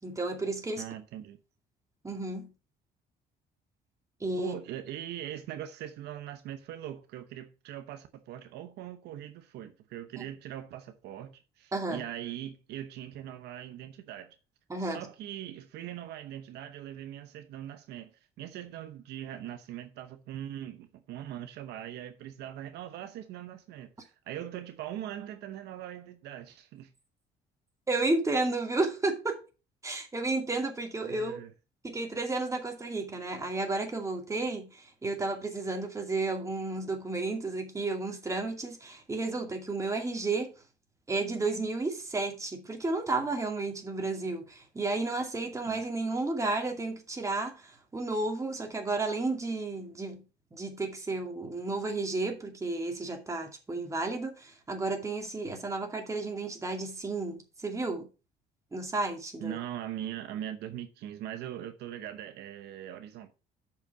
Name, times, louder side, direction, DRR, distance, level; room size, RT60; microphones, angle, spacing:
voice 1, 0.0-0.8 2.0-2.5 4.2-4.5 10.2-10.3 11.7-12.0 14.7-15.0 27.9-29.4 29.8-31.4 31.8-40.5 41.1-50.2 50.5-58.1 58.7-59.6, right 3 dB, 20° right, 2.3 m, -32 dB
voice 2, 0.8-1.4 4.4-14.4 14.8-26.9 31.0-31.5 45.7-45.8 59.4-63.3, right 11 dB, 80° right, 0.9 m, -41 dB
7.0 x 5.5 x 5.5 m
cardioid pair, 110°, 17 cm